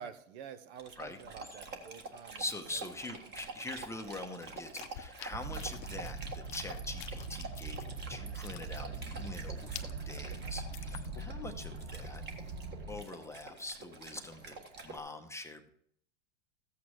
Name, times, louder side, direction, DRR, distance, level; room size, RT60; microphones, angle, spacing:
voice 1, 0.0-2.4 2.7-2.8, right 8 dB, 60° right, 12 dB, 1.0 m, -48 dB
Dog, 0.8-15.0, right 3 dB, 25° right, 1.6 m, -48 dB
voice 2, 2.4-12.2 12.9-14.6 14.8-15.7, left 2 dB, 5° left, 4 dB, 0.8 m, -43 dB
sound 1, 3.8-8.1 8.4-11.5 11.7-11.8 12.2-13.3 13.7-14.6, left 13 dB, 55° left, 0.9 m, -51 dB
sound 2, 5.3-13.0, right 3 dB, 45° right, 3.9 m, -42 dB
14.0 x 8.5 x 3.1 m, 0.67 s
hypercardioid pair, 120°, 38 cm